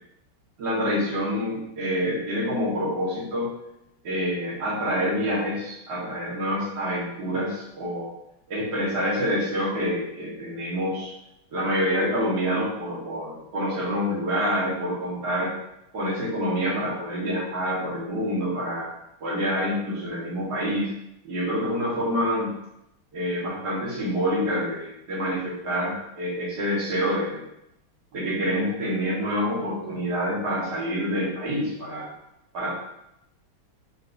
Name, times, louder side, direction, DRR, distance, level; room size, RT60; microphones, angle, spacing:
voice 1, 0.6-3.5 4.0-8.1 8.5-11.1 11.5-15.5 15.9-18.9 19.2-20.9 21.2-22.6 23.1-27.4 28.1-32.1 32.5-32.7, equal, 55° right, -6 dB, 1.9 m, -27 dB
4.6 x 2.9 x 3.8 m, 0.82 s
omnidirectional pair, 2.4 m